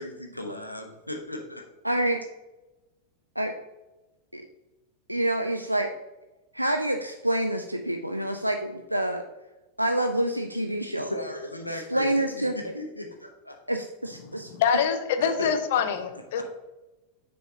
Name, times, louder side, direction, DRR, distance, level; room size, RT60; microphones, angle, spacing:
voice 1, 0.0-1.6 10.9-13.6 15.2-15.8 16.1-16.4, left 1 dB, 90° left, 2 dB, 0.9 m, -37 dB
voice 2, 1.8-2.2 3.4-3.5 4.3-4.4 5.1-5.9 6.5-9.2 9.8-11.1 11.7-12.5 13.7-14.8, right 1 dB, 90° right, 5 dB, 0.4 m, -27 dB
voice 3, 14.2-16.4, left 7 dB, 55° left, 9 dB, 0.7 m, -25 dB
6.6 x 5.5 x 2.8 m, 1.1 s
figure-of-eight pair, 90°, 0 cm